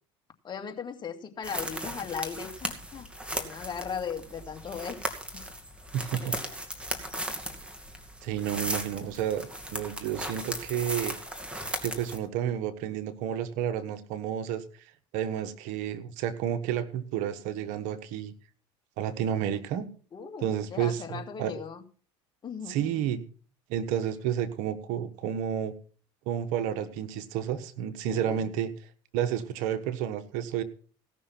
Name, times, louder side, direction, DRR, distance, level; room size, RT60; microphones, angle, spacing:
voice 1, 0.4-3.1 3.3-5.0 5.3-5.4 6.2-6.6 20.1-21.8 22.4-23.1 28.1-28.5, left 7 dB, 35° left, 4 dB, 2.2 m, -38 dB
sound 1, 1.4-12.2, right 1 dB, 10° right, 2.4 m, -37 dB
voice 2, 5.9-6.3 8.2-11.2 11.8-14.6 15.1-18.3 19.0-19.9 20.4-21.5 22.7-23.2 23.7-25.7 26.3-28.7 29.1-30.6, right 10 dB, 70° right, 10 dB, 1.4 m, -31 dB
17.0 x 6.3 x 5.9 m, 0.42 s
supercardioid pair, 90°, 13 cm